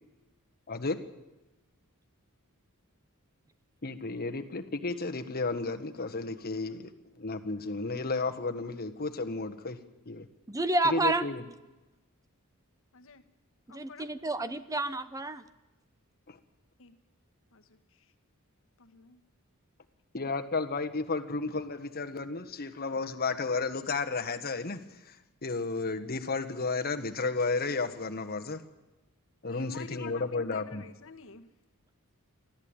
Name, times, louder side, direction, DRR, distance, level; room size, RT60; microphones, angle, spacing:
voice 1, 0.7-1.0 3.8-6.9 7.2-9.8 10.0-10.3 10.9-11.4 16.3-16.4 20.1-24.8 25.1-25.2 25.4-28.6 29.4-30.8, left 3 dB, 45° left, 7 dB, 1.5 m, -32 dB
voice 2, 10.5-11.3 13.7-15.4, right 2 dB, 15° right, 13 dB, 0.7 m, -29 dB
voice 3, 13.7-14.1 16.8-16.9 17.5-17.8 18.8-19.2 29.5-31.5, left 5 dB, 65° left, 8 dB, 1.5 m, -48 dB
24.0 x 15.0 x 8.9 m, 1.1 s
head